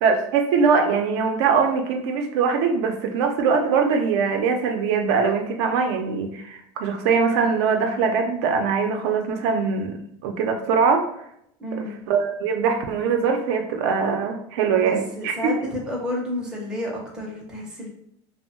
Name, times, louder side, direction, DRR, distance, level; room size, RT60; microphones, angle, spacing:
voice 1, 0.0-11.1 11.8-15.3, right 5 dB, 75° right, 4 dB, 0.4 m, -22 dB
voice 2, 11.6-12.0 14.7-17.9, left 1 dB, 5° right, -3 dB, 0.4 m, -31 dB
2.8 x 2.0 x 2.7 m, 0.74 s
cardioid pair, 175°, 14 cm